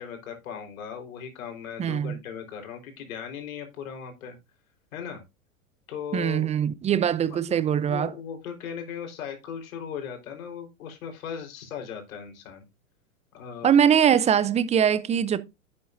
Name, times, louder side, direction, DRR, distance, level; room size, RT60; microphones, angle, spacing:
voice 1, 0.0-4.4 4.9-5.2 5.9-6.5 7.2-12.6 13.3-13.7, left 7 dB, 65° left, 4.3 m, -38 dB
voice 2, 1.8-2.2 6.1-8.1 13.6-15.4, right 8 dB, 15° right, 0.6 m, -22 dB
11.0 x 8.7 x 2.6 m
hypercardioid pair, 100°, 44 cm